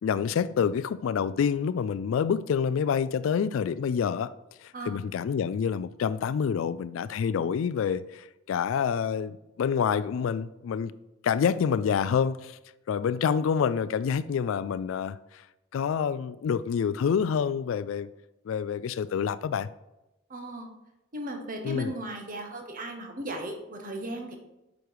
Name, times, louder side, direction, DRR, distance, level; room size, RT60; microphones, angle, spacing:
voice 1, 0.0-4.3 4.6-10.9 11.2-12.6 12.9-15.4 15.7-18.1 18.5-19.7 21.6-21.9, left 7 dB, 75° left, 0.3 m, -27 dB
voice 2, 20.3-20.7 21.1-24.4, right 1 dB, 45° right, 1.2 m, -36 dB
7.9 x 5.2 x 4.7 m
head